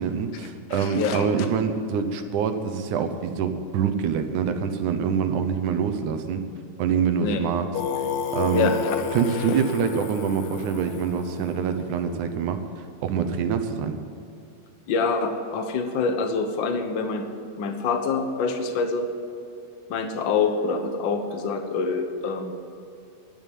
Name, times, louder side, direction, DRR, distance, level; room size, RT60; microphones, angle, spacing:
voice 1, 0.0-6.4 6.8-7.7 8.0-8.1 8.3-8.7 9.1-14.0, right 7 dB, 80° right, 8 dB, 2.4 m, -25 dB
voice 2, 0.7-1.3 7.2-7.4 8.5-8.9 9.5-9.6 14.9-17.3 17.6-19.1 19.9-22.5, left 4 dB, 55° left, 6 dB, 1.4 m, -26 dB
Singing, 7.7-12.5, left 7 dB, 75° left, 2.1 m, -31 dB
12.0 x 9.2 x 9.1 m, 2.6 s
omnidirectional pair, 3.5 m